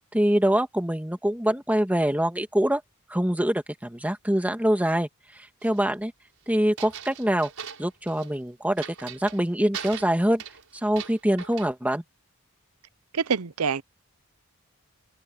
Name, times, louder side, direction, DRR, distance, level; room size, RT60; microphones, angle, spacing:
voice 1, 0.1-2.8 3.1-5.1 5.6-6.1 6.5-7.5 7.8-10.4 10.8-12.0, right 1 dB, 5° right, 1.9 m, -24 dB
sound 1, 5.6-5.9 6.8-8.4 8.8-9.4 9.7-11.7, right 8 dB, 70° right, 6.3 m, -40 dB
voice 2, 13.1-13.8, right 6 dB, 90° right, 0.7 m, -25 dB
open air
head